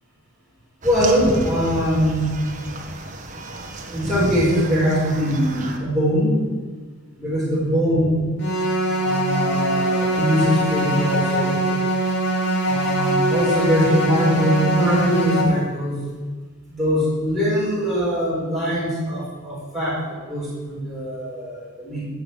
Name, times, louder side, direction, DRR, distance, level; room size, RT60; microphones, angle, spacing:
voice 1, 0.8-2.3 3.9-6.4 7.2-8.3 9.0-11.6 12.6-16.0 16.7-22.1, equal, ahead, -8 dB, 4.9 m, -22 dB
sound 1, 0.8-5.8, right 1 dB, 35° right, 1.5 m, -31 dB
sound 2, 8.4-15.4, right 1 dB, 55° left, 2.6 m, -22 dB
13.5 x 6.9 x 9.9 m, 1.4 s
head